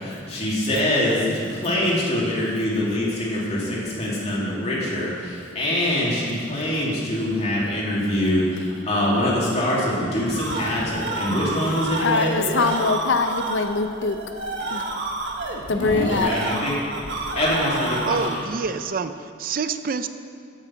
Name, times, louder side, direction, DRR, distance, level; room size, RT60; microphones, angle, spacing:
voice 1, 0.0-12.4 15.8-16.7 17.4-18.2, left 1 dB, 35° left, -6 dB, 2.6 m, -24 dB
sound 1, 10.3-18.6, right 2 dB, 70° right, 1.2 m, -29 dB
voice 2, 12.0-14.2 14.7-14.8 15.7-16.7, left 4 dB, 85° left, 8 dB, 0.6 m, -23 dB
voice 3, 18.0-20.1, right 5 dB, 50° right, 11 dB, 0.4 m, -27 dB
8.7 x 6.5 x 7.6 m, 2.3 s
head